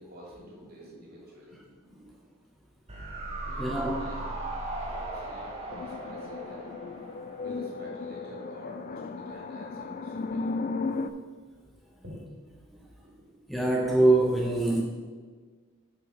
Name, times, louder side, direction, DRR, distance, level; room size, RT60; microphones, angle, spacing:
voice 1, 0.0-2.2 3.4-4.3 4.8-6.7 7.4-10.6 11.9-12.6 12.9-13.4, equal, 45° right, -3 dB, 2.7 m, -48 dB
sound 1, 2.9-8.1 8.4-8.5, right 2 dB, 30° right, 1.4 m, -38 dB
voice 2, 3.6-4.0 13.5-14.8, right 2 dB, ahead, -1 dB, 0.6 m, -23 dB
sound 2, 5.7-11.1, left 3 dB, 40° left, 0.4 m, -35 dB
7.6 x 5.6 x 5.1 m, 1.5 s
head